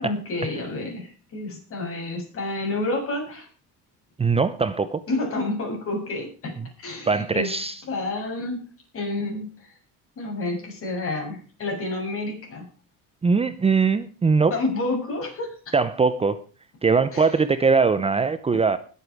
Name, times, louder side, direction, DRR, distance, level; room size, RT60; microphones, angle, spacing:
voice 1, 0.0-3.5 5.1-7.5 7.9-8.6 8.9-9.7 10.2-12.7 14.5-15.8 17.1-17.3 18.5-18.6, left 2 dB, 40° left, 1 dB, 7.4 m, -29 dB
voice 2, 4.2-5.0 7.1-7.7 13.2-14.5 15.7-16.4 16.8-18.8, right 4 dB, 20° right, 13 dB, 0.7 m, -21 dB
20.5 x 8.4 x 4.9 m, 0.38 s
cardioid pair, 140°, 34 cm